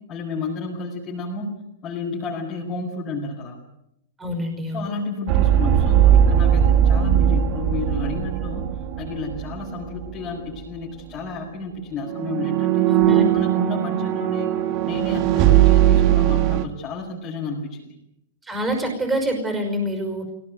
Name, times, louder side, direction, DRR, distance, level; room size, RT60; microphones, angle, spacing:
voice 1, 0.1-1.5 1.8-3.6 4.7-8.7 9.0-12.9 13.3-14.5 14.8-17.9, left 3 dB, 20° left, -6 dB, 6.6 m, -31 dB
voice 2, 4.2-5.0 12.9-13.4 18.4-20.3, equal, 10° right, 4 dB, 5.5 m, -26 dB
sound 1, 5.3-10.1 10.4-10.6 12.1-16.7, right 10 dB, 35° right, 2.1 m, -19 dB
23.5 x 18.5 x 9.6 m, 0.79 s
hypercardioid pair, 160°, 0 cm